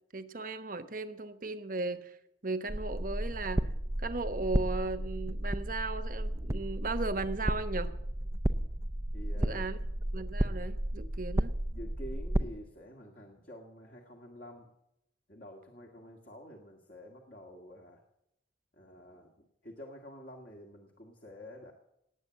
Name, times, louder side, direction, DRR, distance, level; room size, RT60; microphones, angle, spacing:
voice 1, 0.1-2.2 2.4-3.7 4.0-7.9 9.3-9.8 10.1-11.5, right 3 dB, 45° right, 11 dB, 1.1 m, -36 dB
sound 1, 2.7-12.4, right 1 dB, 15° right, 0.5 m, -33 dB
voice 2, 9.1-9.7 11.7-14.7 15.3-18.0 18.7-21.7, equal, 50° left, 0 dB, 1.9 m, -49 dB
18.5 x 9.2 x 7.5 m, 0.82 s
head